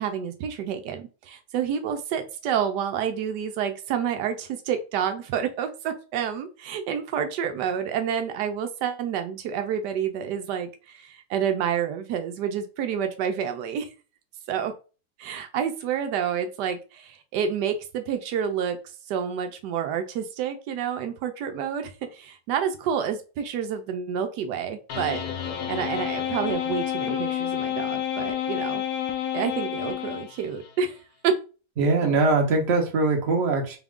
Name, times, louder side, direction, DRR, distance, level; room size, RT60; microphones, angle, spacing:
voice 1, 0.0-13.9 14.5-14.7 15.2-18.8 19.1-25.2 25.7-28.8 29.3-31.0 31.2-31.4, right 8 dB, 85° right, 7 dB, 1.2 m, -29 dB
sound 1, 24.9-30.7, left 10 dB, 70° left, 1.1 m, -29 dB
voice 2, 31.8-33.8, right 3 dB, 45° right, 0 dB, 1.1 m, -22 dB
4.1 x 2.4 x 3.5 m, 0.34 s
omnidirectional pair, 1.8 m